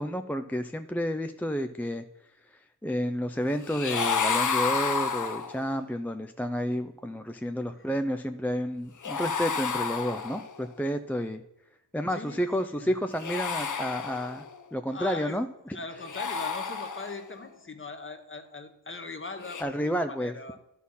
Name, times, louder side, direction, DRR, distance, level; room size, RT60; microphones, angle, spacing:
voice 1, 0.0-2.0 2.8-11.4 11.9-14.4 14.7-15.8 19.6-20.3, equal, 5° left, 7 dB, 0.4 m, -30 dB
sound 1, 3.6-5.8 9.0-10.7 13.1-14.6 16.0-17.3 19.4-19.6, left 5 dB, 45° left, 0.8 m, -30 dB
voice 2, 12.1-12.4 12.8-12.9 14.9-15.4 15.7-20.6, left 3 dB, 30° left, 7 dB, 1.1 m, -40 dB
11.0 x 4.3 x 5.5 m, 0.86 s
cardioid pair, 60°, 43 cm